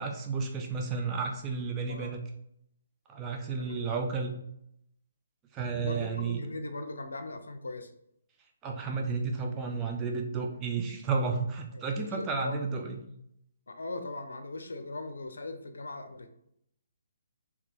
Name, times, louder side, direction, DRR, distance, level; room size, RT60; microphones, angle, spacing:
voice 1, 0.0-2.2 3.1-4.3 5.5-6.4 8.6-13.0, right 4 dB, 20° right, 2 dB, 0.7 m, -32 dB
voice 2, 3.6-3.9 5.8-7.9 11.7-12.6 13.7-16.3, left 2 dB, 80° left, 7 dB, 0.6 m, -39 dB
4.1 x 2.9 x 4.3 m, 0.76 s
hypercardioid pair, 145°, 0 cm